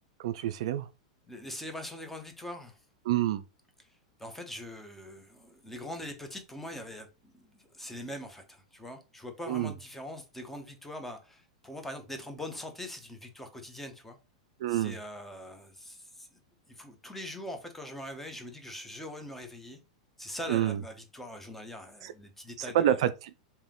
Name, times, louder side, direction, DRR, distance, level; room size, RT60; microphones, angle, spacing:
voice 1, 0.2-0.9 3.1-3.4 9.5-9.7 14.6-15.0 20.5-20.8 22.0-22.1 22.6-23.3, right 12 dB, 65° right, 0.3 m, -28 dB
voice 2, 1.3-2.8 3.8-14.2 14.7-16.4 16.7-19.8 20.2-23.0, left 1 dB, 5° left, 0.9 m, -42 dB
3.4 x 2.8 x 3.6 m
hypercardioid pair, 100°, 3 cm